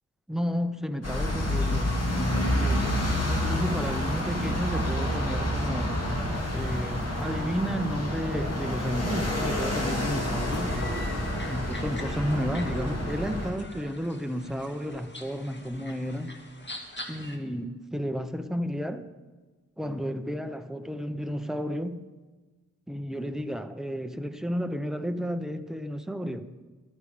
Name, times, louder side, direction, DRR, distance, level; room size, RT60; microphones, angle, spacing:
voice 1, 0.3-6.0 6.5-10.8 11.5-16.4 17.1-19.1 19.8-22.0 22.9-26.5, equal, ahead, 8 dB, 0.8 m, -32 dB
sound 1, 1.0-13.5, left 1 dB, 50° left, 2.5 m, -28 dB
sound 2, 10.5-17.4, left 1 dB, 35° left, 1.9 m, -44 dB
14.0 x 12.0 x 5.0 m, 1.3 s
wide cardioid pair, 80°, 31 cm